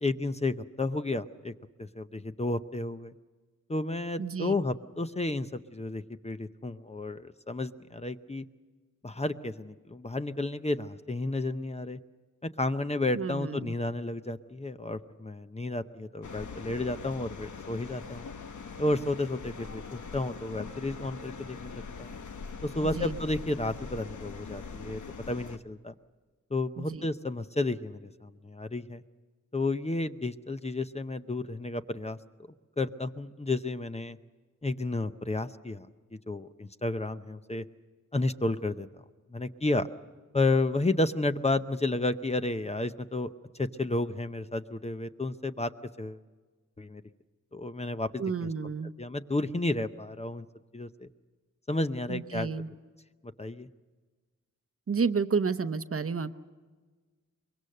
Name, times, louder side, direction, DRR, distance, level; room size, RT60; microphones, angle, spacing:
voice 1, 0.0-1.5 1.8-3.1 3.7-8.5 9.0-12.0 12.4-18.3 18.8-22.1 22.6-25.0 25.3-25.9 26.5-29.0 29.5-32.2 32.8-34.2 34.6-35.9 36.3-37.6 38.1-38.9 39.3-39.9 40.3-43.3 43.6-45.7 46.0-46.2 46.8-47.0 47.5-48.5 49.0-50.4 50.7-51.1 51.7-52.5 53.4-53.7, left 2 dB, 20° left, 10 dB, 0.7 m, -32 dB
voice 2, 4.2-4.5 13.1-13.7 22.8-23.2 26.8-27.1 48.2-48.9 52.1-52.7 54.9-56.3, right 5 dB, 50° right, 11 dB, 0.8 m, -31 dB
sound 1, 16.2-25.6, left 5 dB, 75° left, 1.1 m, -42 dB
24.0 x 22.5 x 6.6 m, 1.4 s
wide cardioid pair, 125°, 30 cm